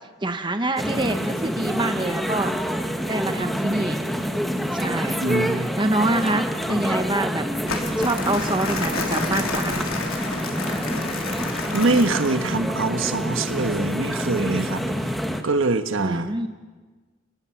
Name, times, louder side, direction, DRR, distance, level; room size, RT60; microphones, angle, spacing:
voice 1, 0.2-2.5 3.1-4.0 4.7-5.2 5.8-7.5 7.7-9.9 16.0-16.5, right 2 dB, 20° right, 7 dB, 0.9 m, -26 dB
sound 1, 0.8-15.4, equal, ahead, 1.2 m, -27 dB
voice 2, 5.2-5.7 11.7-15.1 15.4-16.3, right 3 dB, 70° right, 8 dB, 1.3 m, -24 dB
Crumpling crinkling, 7.7-12.5, left 3 dB, 85° left, 3.3 m, -30 dB
29.0 x 19.0 x 5.9 m, 1.4 s
head